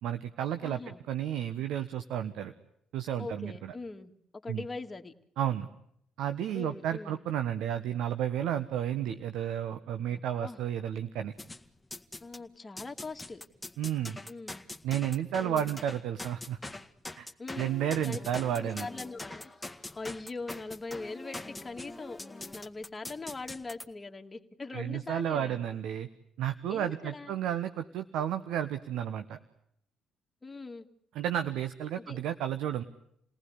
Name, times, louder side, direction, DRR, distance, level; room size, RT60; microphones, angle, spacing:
voice 1, 0.0-2.5 2.9-3.7 4.5-4.6 5.4-5.7 6.2-11.3 13.8-14.2 14.8-16.6 17.2-17.3 17.6-18.9 24.7-26.1 26.4-29.4 31.1-32.8, right 10 dB, 75° right, 9 dB, 1.1 m, -32 dB
voice 2, 0.6-1.0 3.2-4.1 4.4-5.1 6.5-7.2 10.1-10.6 12.2-13.4 14.3-14.7 15.4-15.8 17.4-17.7 18.1-18.2 18.6-19.5 20.0-22.2 22.5-25.6 26.7-27.3 30.4-30.9 31.9-32.2, left 3 dB, 25° left, 5 dB, 2.2 m, -41 dB
sound 1, 11.4-12.4 12.8-23.9, left 2 dB, 10° left, 1.9 m, -43 dB
29.0 x 18.5 x 9.8 m, 0.74 s
hypercardioid pair, 55°, 0 cm